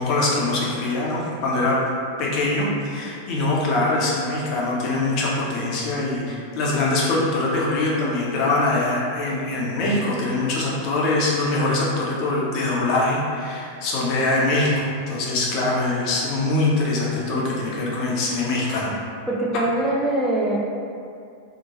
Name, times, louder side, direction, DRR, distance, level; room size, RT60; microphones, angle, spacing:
voice 1, 0.0-1.8 2.2-18.9, left 2 dB, 40° left, -5 dB, 0.6 m, -23 dB
voice 2, 19.3-20.6, right 1 dB, 5° right, -6 dB, 0.3 m, -22 dB
2.8 x 2.1 x 2.8 m, 2.4 s
figure-of-eight pair, 90°, 0 cm